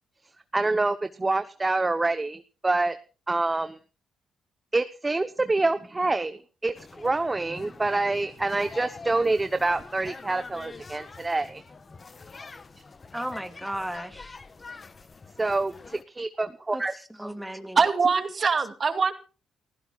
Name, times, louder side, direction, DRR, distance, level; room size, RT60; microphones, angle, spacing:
voice 1, 0.5-3.0 3.3-3.8 4.7-11.6 15.4-16.9, right 2 dB, 20° right, 10 dB, 1.0 m, -26 dB
sound 1, 6.7-16.0, left 4 dB, 30° left, 1.3 m, -45 dB
voice 2, 13.1-14.4 16.7-17.8, right 1 dB, 5° right, 7 dB, 2.4 m, -35 dB
voice 3, 17.8-19.1, right 5 dB, 40° right, 8 dB, 2.5 m, -23 dB
29.5 x 15.5 x 2.5 m, 0.35 s
cardioid pair, 90°, 0 cm